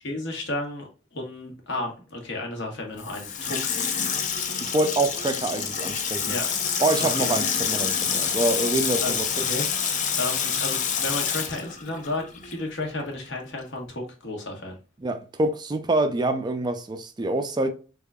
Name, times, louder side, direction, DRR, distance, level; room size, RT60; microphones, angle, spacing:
voice 1, 0.0-3.8 6.3-6.5 7.0-7.3 9.0-9.7 10.2-14.8, left 2 dB, 60° left, 1.2 m, -33 dB
Water tap faucet / Sink (filling or washing), 3.0-12.7 13.0-13.1, left 7 dB, 40° left, 0.5 m, -27 dB
voice 2, 4.6-6.4 6.8-9.3 15.0-17.7, right 2 dB, 20° right, 0.4 m, -26 dB
3.6 x 3.6 x 2.2 m
head